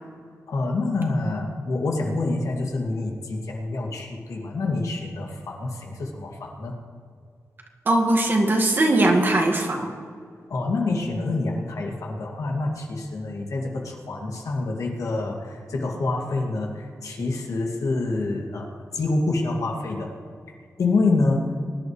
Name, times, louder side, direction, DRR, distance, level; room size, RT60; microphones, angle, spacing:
voice 1, 0.5-6.8 10.5-20.1 20.8-21.5, left 3 dB, 75° left, 0 dB, 2.3 m, -27 dB
voice 2, 7.9-9.9, right 2 dB, 40° right, 2 dB, 1.8 m, -20 dB
22.5 x 11.5 x 3.2 m, 2.2 s
wide cardioid pair, 155°, 6 cm